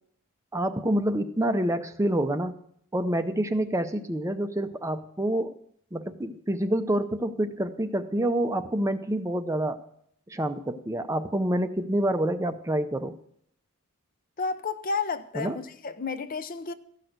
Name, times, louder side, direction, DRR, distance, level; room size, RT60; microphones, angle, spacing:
voice 1, 0.5-2.6 2.9-5.6 5.9-9.8 10.3-13.2 15.4-15.6, right 1 dB, 15° right, 0.5 m, -27 dB
voice 2, 14.4-16.7, left 4 dB, 40° left, 0.6 m, -31 dB
14.0 x 6.0 x 7.9 m
head